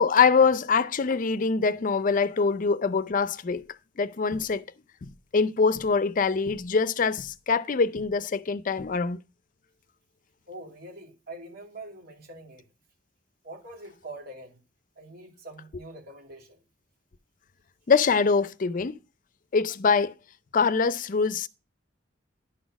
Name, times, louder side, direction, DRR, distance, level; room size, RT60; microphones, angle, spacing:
voice 1, 0.0-3.6 4.0-4.6 5.0-9.2 17.9-19.0 19.5-20.1 20.5-21.5, left 5 dB, 45° left, 0.5 m, -24 dB
voice 2, 10.5-12.6 13.4-14.6 15.0-16.6, right 2 dB, 55° right, 2.5 m, -44 dB
11.0 x 4.2 x 6.0 m
head